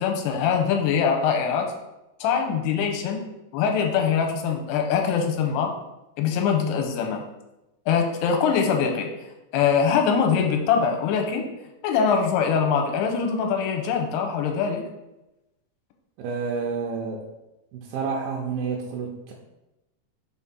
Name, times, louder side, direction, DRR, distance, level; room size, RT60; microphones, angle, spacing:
voice 1, 0.0-1.7 2.2-3.2 3.5-5.7 6.2-7.2 7.9-9.1 9.5-11.5 11.8-14.8, left 6 dB, 85° left, 3 dB, 2.7 m, -23 dB
voice 2, 16.2-17.3 17.7-19.3, right 5 dB, 80° right, -1 dB, 2.2 m, -29 dB
6.1 x 3.6 x 4.2 m, 0.97 s
omnidirectional pair, 4.9 m